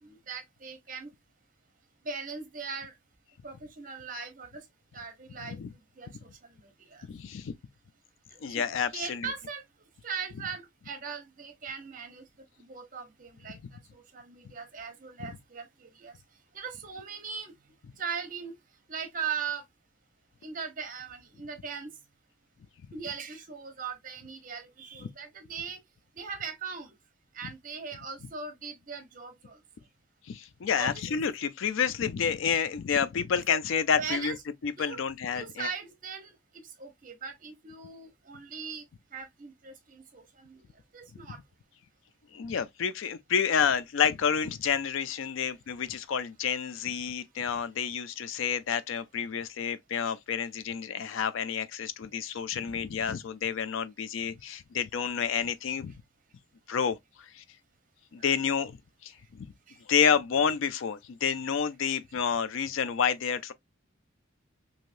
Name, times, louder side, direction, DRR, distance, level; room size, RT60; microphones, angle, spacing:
voice 1, 0.0-1.1 2.0-2.9 3.4-4.6 4.9-5.6 6.0-6.3 6.6-7.1 8.3-8.6 8.9-9.6 10.0-12.3 12.6-13.6 13.9-16.1 16.5-17.5 18.0-18.5 18.9-19.6 20.4-21.9 22.9-25.8 26.2-26.9 27.3-29.6 30.8-31.0 34.0-34.4 34.8-35.0 35.3-38.8 39.1-40.6 40.9-41.4 58.2-58.3 59.7-59.8, right 6 dB, 40° right, 0.8 m, -39 dB
voice 2, 7.1-7.5 8.4-9.3 15.2-15.3 30.3-34.4 34.6-35.7 42.3-55.9 56.7-57.4 58.1-58.8 59.0-59.5 59.9-63.5, left 7 dB, 70° left, 0.4 m, -29 dB
3.2 x 2.7 x 2.5 m
head